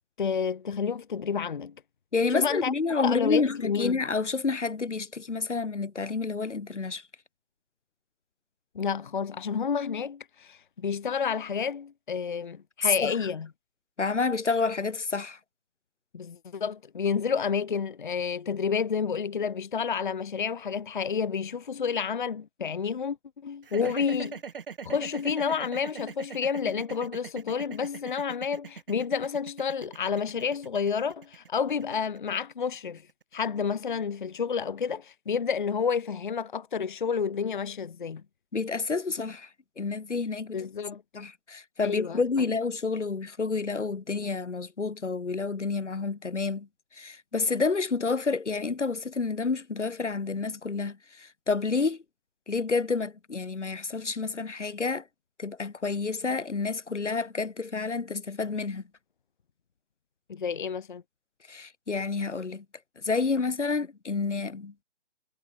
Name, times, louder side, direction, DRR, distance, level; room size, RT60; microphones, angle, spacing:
voice 1, 0.2-1.7 2.3-2.7 3.0-4.0 8.8-13.5 16.1-23.2 23.4-24.4 24.8-33.0 33.3-38.2 40.5-41.0 41.8-42.2 60.3-61.0, left 6 dB, 45° left, 0.8 m, -30 dB
voice 2, 2.1-7.0 13.0-13.1 14.0-15.4 23.8-23.9 38.5-39.5 39.8-40.6 41.1-46.7 47.0-52.0 52.5-55.0 55.4-58.8 61.5-62.6 63.0-64.7, left 4 dB, 80° left, 2.5 m, -29 dB
sound 1, 23.6-33.8, right 6 dB, 50° right, 2.2 m, -42 dB
figure-of-eight pair, 160°, 35 cm